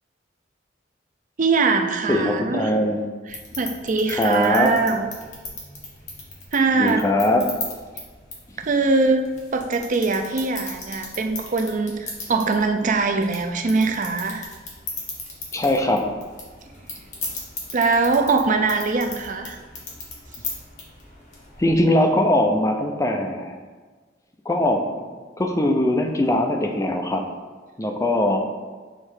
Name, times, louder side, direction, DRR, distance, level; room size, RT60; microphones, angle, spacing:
voice 1, 1.4-2.7 3.3-5.1 6.5-7.1 8.6-9.3 9.5-14.5 17.7-19.6, right 3 dB, 45° right, 5 dB, 0.4 m, -22 dB
voice 2, 2.1-3.0 4.1-4.7 6.8-7.4 15.5-16.0 21.6-23.6 24.5-24.8 25.4-27.2 27.8-28.4, left 1 dB, 15° left, 3 dB, 0.5 m, -21 dB
sound 1, 3.3-21.7, left 3 dB, 40° left, 1.5 m, -38 dB
6.5 x 3.2 x 4.8 m, 1.4 s
head